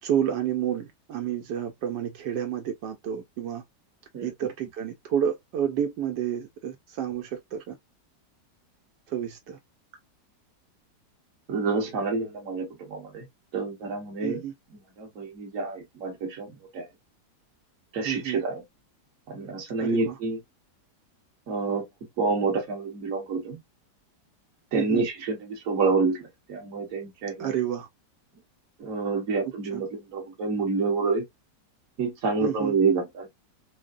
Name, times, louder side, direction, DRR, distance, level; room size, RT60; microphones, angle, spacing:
voice 1, 0.0-3.6 4.2-7.8 9.1-9.6 14.2-14.5 18.0-18.4 19.8-20.2 24.7-25.0 27.4-27.9 29.6-29.8 32.4-32.7, right 9 dB, 75° right, 1.3 m, -30 dB
voice 2, 11.5-13.2 13.5-14.4 15.0-16.9 17.9-18.6 19.3-20.4 21.5-21.8 22.2-23.6 24.7-27.5 28.8-31.2 32.0-33.3, right 4 dB, 50° right, 1.7 m, -28 dB
6.2 x 2.1 x 2.5 m
omnidirectional pair, 1.9 m